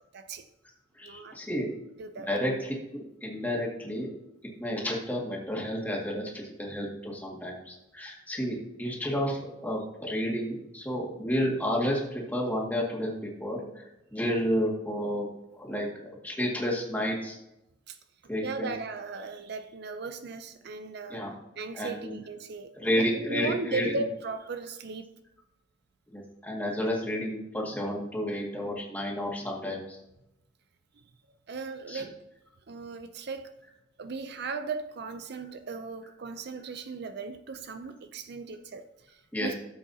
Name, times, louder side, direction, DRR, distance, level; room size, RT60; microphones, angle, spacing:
voice 1, 0.1-0.4 1.0-1.4 2.0-2.3 17.9-18.0 18.4-21.2 21.6-25.1 31.5-32.2 32.7-33.5 34.0-39.5, right 4 dB, 55° right, 0.5 m, -37 dB
voice 2, 1.0-1.7 2.3-4.1 4.6-13.8 14.1-15.3 15.5-17.4 18.3-18.7 21.1-21.3 21.7-22.2 22.7-24.0 26.1-30.0 31.9-32.0 39.3-39.6, equal, 10° left, 2.0 m, -31 dB
13.5 x 7.5 x 2.8 m
head